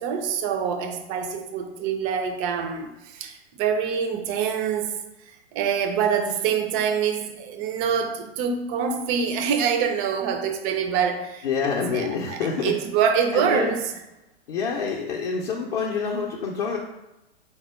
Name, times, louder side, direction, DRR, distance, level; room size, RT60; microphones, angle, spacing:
voice 1, 0.0-4.9 5.5-13.8, right 7 dB, 20° right, 5 dB, 0.3 m, -25 dB
voice 2, 11.4-12.7 13.3-13.7 14.5-16.8, left 5 dB, 40° left, -1 dB, 0.6 m, -27 dB
4.1 x 2.2 x 4.4 m, 0.96 s
figure-of-eight pair, 105°, 31 cm